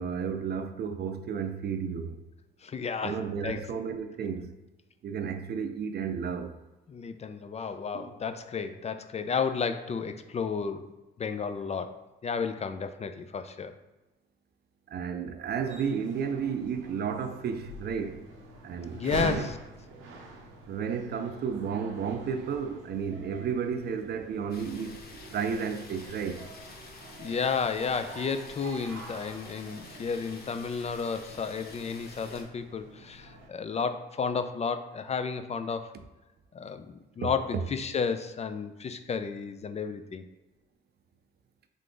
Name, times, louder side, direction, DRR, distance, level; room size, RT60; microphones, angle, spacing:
voice 1, 0.0-2.2 3.0-4.5 5.0-6.6 7.9-8.1 14.9-18.3 18.6-19.5 20.7-25.0 25.3-26.4, right 6 dB, 55° right, 0.5 m, -32 dB
voice 2, 2.6-3.7 6.9-10.9 11.2-13.8 18.9-19.6 27.2-36.0 36.5-40.2, left 5 dB, 35° left, 0.4 m, -32 dB
sound 1, 15.7-33.5, right 2 dB, 85° right, 0.7 m, -45 dB
sound 2, 24.5-32.4, left 3 dB, 50° left, 1.0 m, -49 dB
3.7 x 3.3 x 3.8 m
cardioid pair, 90°, 20 cm